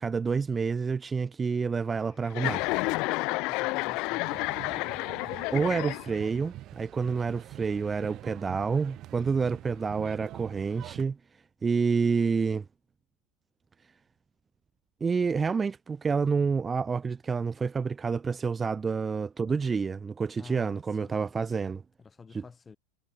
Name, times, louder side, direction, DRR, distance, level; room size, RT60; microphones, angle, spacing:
voice 1, 0.0-2.6 5.5-12.7 15.0-21.8, right 5 dB, 20° right, 0.3 m, -28 dB
Chuckle chortle, 2.3-6.4, left 25 dB, 55° left, 0.9 m, -30 dB
voice 2, 3.3-4.8 20.3-21.3 22.0-22.8, left 5 dB, 20° left, 7.8 m, -50 dB
sound 1, 4.2-11.0, right 14 dB, 45° right, 4.9 m, -45 dB
hypercardioid pair, 105°, 0 cm